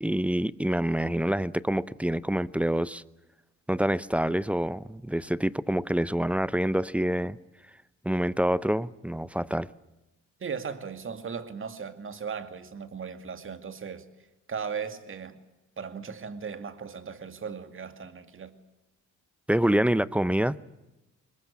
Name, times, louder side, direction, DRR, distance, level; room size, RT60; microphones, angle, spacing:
voice 1, 0.0-3.0 3.7-7.4 8.0-9.7 19.5-20.6, right 1 dB, 5° right, 0.7 m, -26 dB
voice 2, 10.4-14.0 14.5-15.4 15.8-18.5, right 6 dB, 45° right, 2.3 m, -37 dB
22.0 x 20.5 x 8.4 m
cardioid pair, 90°, 30 cm